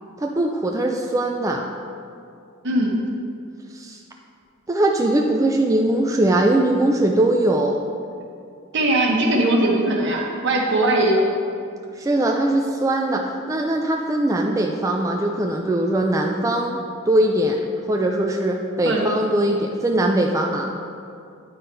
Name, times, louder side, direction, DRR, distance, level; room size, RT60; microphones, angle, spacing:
voice 1, 0.2-1.6 3.7-4.0 4.7-7.8 12.0-16.8 17.0-17.6 17.9-20.7, right 1 dB, 15° right, 1 dB, 0.3 m, -21 dB
voice 2, 2.6-3.0 8.7-11.3 18.8-19.1, right 1 dB, 60° right, -1 dB, 1.2 m, -20 dB
9.3 x 5.3 x 4.4 m, 2.4 s
head